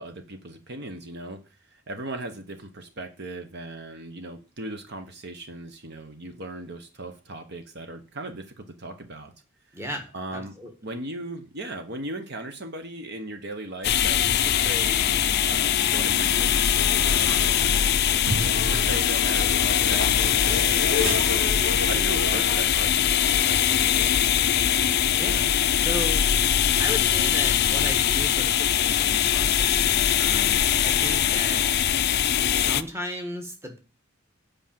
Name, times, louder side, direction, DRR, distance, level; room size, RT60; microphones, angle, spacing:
voice 1, 0.0-1.4 1.7-9.3 9.7-9.8 10.1-10.5 10.8-17.7 18.4-24.3, right 2 dB, 50° right, 7 dB, 1.1 m, -38 dB
voice 2, 9.7-10.7 25.2-25.5 25.8-31.7 32.5-33.8, equal, 10° right, 3 dB, 1.4 m, -35 dB
sound 1, 13.8-32.8, left 10 dB, 50° left, 0.4 m, -22 dB
Wind instrument woodwind instrument, 14.3-19.2, left 1 dB, 5° left, 1.3 m, -45 dB
sound 2, 17.0-22.6, equal, 75° right, 2.9 m, -32 dB
8.2 x 5.0 x 7.5 m, 0.33 s
head